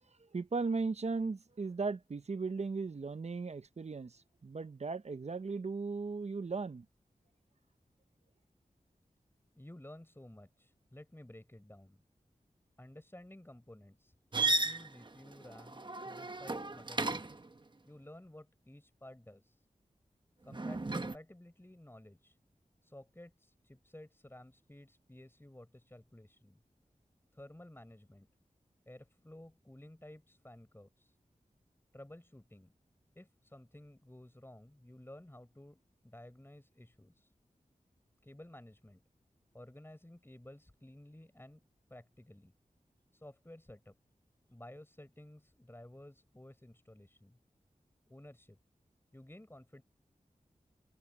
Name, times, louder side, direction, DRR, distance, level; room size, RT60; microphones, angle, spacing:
voice 1, 0.3-6.8, right 4 dB, 55° right, 0.7 m, -37 dB
voice 2, 9.6-12.0 12.8-17.4 17.8-19.6 20.4-22.4 22.8-26.6 27.3-28.3 28.9-31.2 31.9-32.7 33.1-37.3 38.2-39.0 39.5-41.6 41.9-42.5 43.1-43.9 44.5-47.4 48.1-48.6 49.1-49.8, left 1 dB, 15° left, 4.7 m, -54 dB
sound 1, 14.3-17.5 20.5-21.2, right 2 dB, 35° right, 1.0 m, -35 dB
wide cardioid pair, 65°, 14 cm